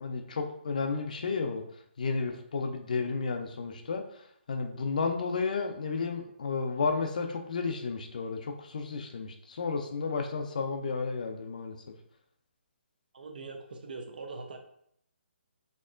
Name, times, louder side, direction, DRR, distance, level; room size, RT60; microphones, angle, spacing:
voice 1, 0.0-1.6 2.0-4.0 4.5-11.8, left 4 dB, 40° left, 5 dB, 0.4 m, -32 dB
voice 2, 13.1-14.6, right 3 dB, 50° right, 4 dB, 0.6 m, -42 dB
4.2 x 2.9 x 2.4 m, 0.69 s
hypercardioid pair, 175°, 6 cm